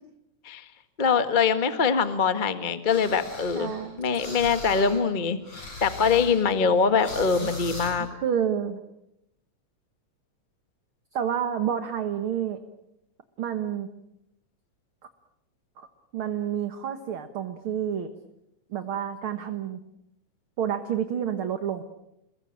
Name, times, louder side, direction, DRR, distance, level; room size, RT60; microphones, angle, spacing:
voice 1, 1.0-3.7 4.0-5.4 5.8-8.1, left 5 dB, 25° left, 10 dB, 1.1 m, -23 dB
sound 1, 2.9-5.1 5.3-8.0, left 2 dB, 65° left, 7.8 m, -40 dB
voice 2, 3.5-4.0 7.4-7.5 8.0-8.8 11.1-12.6 13.4-13.9 15.8-15.9 16.1-18.1 18.7-19.8 20.6-21.8, right 9 dB, 55° right, 8 dB, 1.9 m, -29 dB
29.5 x 21.5 x 8.9 m, 0.84 s
omnidirectional pair, 3.3 m